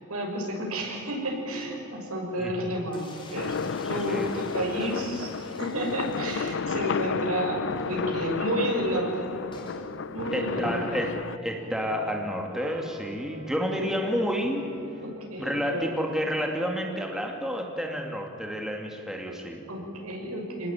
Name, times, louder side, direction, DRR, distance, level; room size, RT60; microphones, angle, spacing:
voice 1, 0.1-3.6 3.9-5.3 5.6-9.3 10.1-10.9 13.8-13.9 15.0-16.0 19.7-20.7, right 1 dB, 90° right, 0 dB, 6.4 m, -31 dB
sound 1, 2.9-7.1 7.4-7.5 7.8-7.9 9.5-9.9, left 2 dB, 25° left, 3.9 m, -48 dB
sound 2, 3.4-11.4, left 5 dB, 55° left, 0.5 m, -32 dB
voice 2, 3.8-4.4 4.7-5.0 10.3-14.6 15.4-19.6, equal, ahead, 1 dB, 2.4 m, -30 dB
sound 3, 8.9-16.6, equal, 40° right, 5.8 m, -47 dB
25.5 x 20.0 x 9.1 m, 2.7 s
head